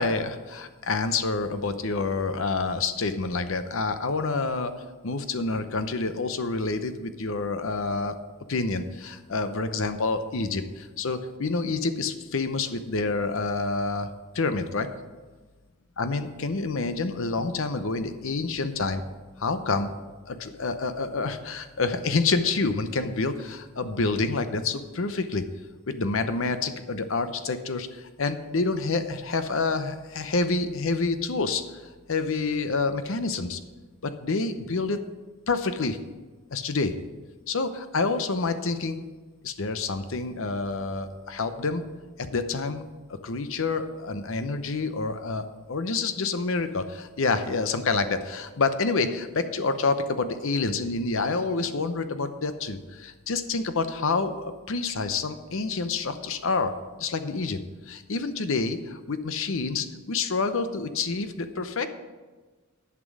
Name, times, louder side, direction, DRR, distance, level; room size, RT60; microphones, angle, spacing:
voice 1, 0.0-4.7 5.0-8.1 8.5-14.1 14.3-14.9 16.0-19.0 19.4-19.9 20.3-25.4 25.9-31.8 32.1-33.6 34.0-35.0 35.5-36.0 36.5-36.9 37.5-39.0 39.4-41.9 42.2-42.8 43.2-57.6 57.9-61.9, left 3 dB, 65° left, 10 dB, 0.8 m, -28 dB
11.0 x 6.0 x 6.2 m, 1.3 s
head